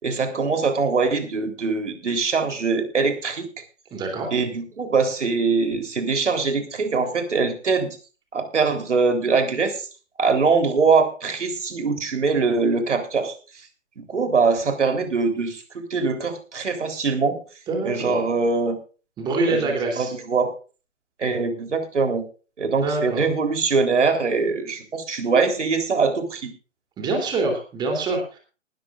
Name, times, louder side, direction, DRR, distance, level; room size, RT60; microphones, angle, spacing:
voice 1, 0.0-3.5 4.3-8.0 8.3-9.9 10.2-13.3 14.0-17.4 17.8-18.8 19.5-20.5 21.2-22.2 22.6-26.5, right 4 dB, 65° right, 6 dB, 3.8 m, -22 dB
voice 2, 3.9-4.3 17.7-18.2 19.2-20.1 22.8-23.2 27.0-28.4, right 3 dB, 10° right, 2 dB, 3.2 m, -25 dB
20.0 x 12.5 x 2.5 m, 0.35 s
figure-of-eight pair, 150°, 39 cm